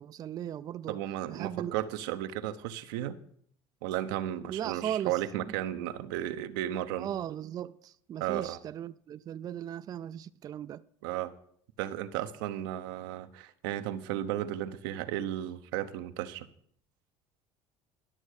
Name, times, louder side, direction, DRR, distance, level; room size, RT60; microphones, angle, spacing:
voice 1, 0.0-1.0 1.3-1.8 4.5-5.2 7.0-10.8, right 10 dB, 35° right, 0.4 m, -37 dB
voice 2, 0.9-3.2 3.8-7.1 8.2-8.6 11.0-11.3 11.8-16.5, right 12 dB, 85° right, 0.8 m, -34 dB
11.5 x 6.4 x 6.4 m
supercardioid pair, 110°, 11 cm